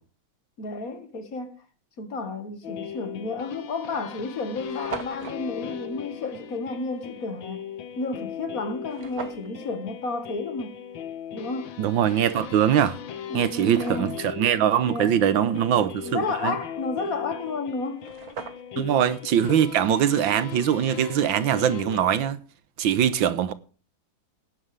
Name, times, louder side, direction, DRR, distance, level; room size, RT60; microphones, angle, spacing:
voice 1, 0.6-1.5 2.0-7.6 8.0-10.7 11.3-11.7 13.3-14.1 14.8-15.7 16.0-18.1 18.8-18.9 19.5-19.7, left 3 dB, 50° left, 2.1 m, -32 dB
sound 1, 2.6-22.3, left 9 dB, 90° left, 1.9 m, -39 dB
sound 2, 3.1-3.2 4.0-4.1 4.2-4.3 4.5-5.4 8.9-9.5 12.4-12.5 13.1-14.2 17.6-17.7 17.9-18.9, right 6 dB, 55° right, 1.6 m, -39 dB
voice 2, 11.8-13.0 13.3-16.6 18.8-22.4 22.8-23.5, right 9 dB, 85° right, 1.8 m, -22 dB
16.5 x 11.5 x 3.4 m
omnidirectional pair, 2.1 m